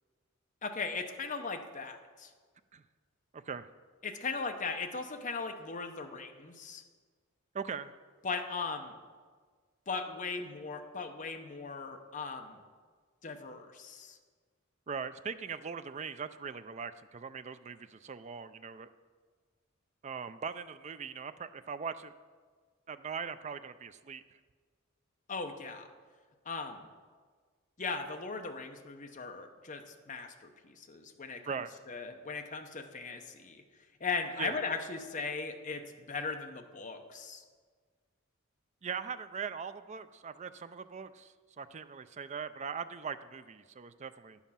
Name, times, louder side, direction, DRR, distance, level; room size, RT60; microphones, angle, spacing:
voice 1, 0.6-2.3 4.0-6.8 8.2-9.0 9.9-12.6 13.2-14.2 25.3-25.9 26.5-26.9 27.8-31.4 31.9-33.6 34.0-37.4, left 4 dB, 40° left, 5 dB, 0.8 m, -38 dB
voice 2, 3.3-3.7 7.5-7.9 14.9-18.9 20.0-22.1 22.9-24.2 31.5-31.7 34.4-34.6 38.8-44.4, right 6 dB, 35° right, 12 dB, 0.4 m, -40 dB
10.5 x 7.2 x 5.7 m, 1.5 s
head